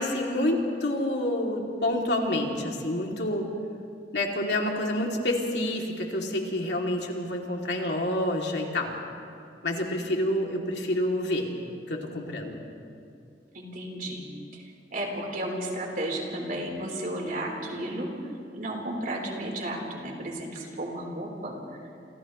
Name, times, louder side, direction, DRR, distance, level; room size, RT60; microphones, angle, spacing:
voice 1, 0.0-3.5 4.1-9.0 9.6-11.5 11.9-12.6, left 1 dB, 75° left, 0 dB, 2.8 m, -28 dB
voice 2, 13.5-14.3 14.5-18.1 18.5-21.5, right 1 dB, 55° right, 0 dB, 4.1 m, -33 dB
29.0 x 28.0 x 3.2 m, 2.6 s
head